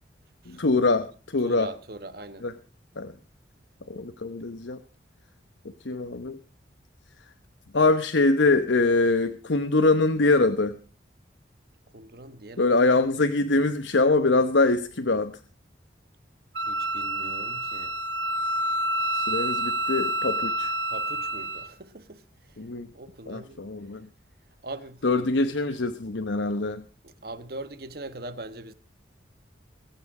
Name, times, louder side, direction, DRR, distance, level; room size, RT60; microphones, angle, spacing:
voice 1, 0.5-1.1 1.3-1.7 2.4-2.5 3.0-3.1 3.9-4.8 5.8-6.4 7.7-10.8 12.6-15.3 19.1-20.7 22.6-22.9 23.3-24.1 25.0-26.8, left 3 dB, 85° left, 0.9 m, -23 dB
voice 2, 1.4-2.5 11.9-12.7 16.7-17.9 20.9-22.2 22.9-23.6 24.6-25.0 27.0-28.7, right 2 dB, 55° right, 1.3 m, -41 dB
Wind instrument woodwind instrument, 16.5-21.7, right 1 dB, 75° right, 1.3 m, -28 dB
22.5 x 9.0 x 4.8 m
head